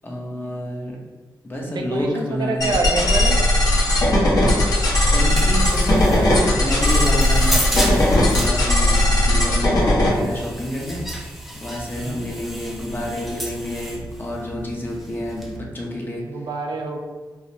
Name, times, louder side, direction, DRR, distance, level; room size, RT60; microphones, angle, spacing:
voice 1, 0.0-1.0 1.4-3.0 5.1-11.0 11.6-16.2, left 1 dB, 25° left, -2 dB, 0.8 m, -29 dB
voice 2, 1.7-3.4 12.0-12.3 16.2-17.0, right 3 dB, 65° right, 2 dB, 0.5 m, -26 dB
sound 1, 2.6-10.1, left 1 dB, 50° left, 1.0 m, -17 dB
sound 2, 4.9-15.6, right 1 dB, ahead, 0.5 m, -32 dB
4.8 x 2.1 x 2.8 m, 1.3 s
cardioid pair, 80°, 8 cm